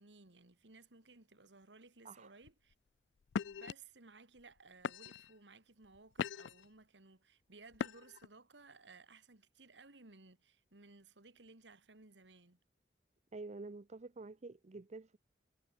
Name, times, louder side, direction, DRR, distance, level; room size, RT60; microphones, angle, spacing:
voice 1, 0.0-2.7 3.4-12.6, right 3 dB, 80° right, 2.3 m, -59 dB
sound 1, 2.4-2.7 3.3-3.7 4.4-4.5 4.8-5.3 5.8-6.7 7.7-8.3, left 7 dB, 75° left, 0.4 m, -40 dB
voice 2, 13.3-15.2, right 3 dB, 40° right, 0.6 m, -48 dB
head